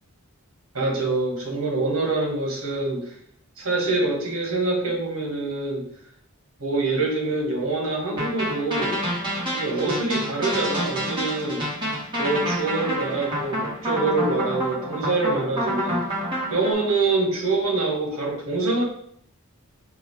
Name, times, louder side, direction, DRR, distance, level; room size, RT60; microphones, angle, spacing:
voice 1, 0.7-3.1 3.6-5.8 6.6-9.0 9.5-11.6 12.2-16.0 16.5-18.8, right 3 dB, 70° right, -1 dB, 1.5 m, -25 dB
sound 1, 8.2-16.7, equal, 20° right, 1.5 m, -28 dB
5.4 x 2.5 x 3.4 m, 0.66 s
head